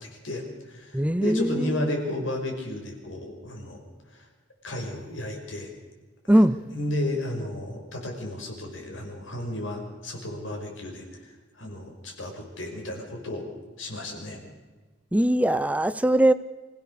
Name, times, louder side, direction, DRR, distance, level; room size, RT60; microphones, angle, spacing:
voice 1, 0.0-3.8 4.1-4.3 4.6-5.7 6.3-6.4 6.7-13.4 13.8-14.4, left 1 dB, 85° left, 2 dB, 5.5 m, -33 dB
voice 2, 0.9-1.9 6.3-6.6 15.1-16.3, right 1 dB, 5° right, 14 dB, 0.6 m, -21 dB
26.0 x 16.0 x 6.7 m, 1.3 s
head